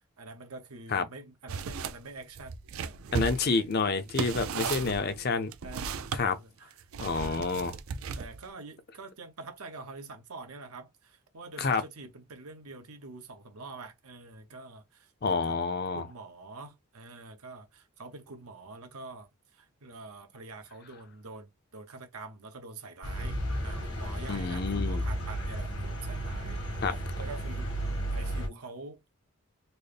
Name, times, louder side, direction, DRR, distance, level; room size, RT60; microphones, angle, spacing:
voice 1, 0.2-3.0 3.4-3.6 4.3-5.1 5.6-7.7 8.2-15.6 15.9-26.8 27.2-27.7 28.1-29.0, right 3 dB, 90° right, 1.0 m, -46 dB
sound 1, 1.5-2.0 2.4-6.2 6.9-8.5, right 5 dB, 70° right, 0.4 m, -35 dB
voice 2, 3.1-5.5 6.1-6.4 7.0-7.8 11.6-11.8 15.2-16.1 24.3-25.0 26.8-27.0, left 4 dB, 45° left, 0.5 m, -28 dB
sound 2, 23.0-28.5, equal, 80° left, 1.6 m, -33 dB
4.1 x 2.1 x 3.3 m
head